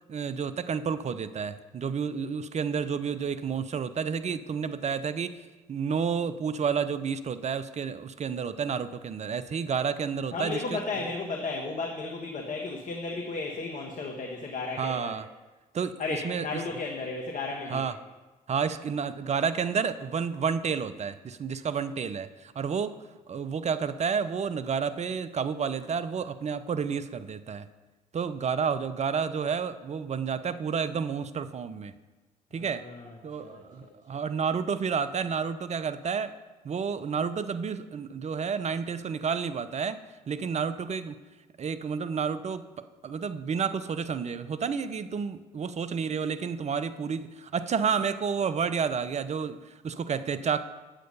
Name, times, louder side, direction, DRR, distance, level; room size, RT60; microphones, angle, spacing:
voice 1, 0.1-5.4 5.7-10.8 14.8-15.2 15.7-15.9 16.2-16.5 17.7-17.9 18.5-22.3 22.6-22.9 23.3-27.7 28.1-31.9 32.5-32.8 33.2-36.3 36.6-40.0 40.3-41.2 41.6-42.7 43.0-49.6 49.8-50.6, right 6 dB, 40° right, 13 dB, 0.7 m, -30 dB
voice 2, 10.3-15.2 16.0-17.9 32.5-33.9, left 3 dB, 45° left, 0 dB, 1.4 m, -34 dB
9.0 x 7.7 x 5.4 m, 1.2 s
hypercardioid pair, 55°, 18 cm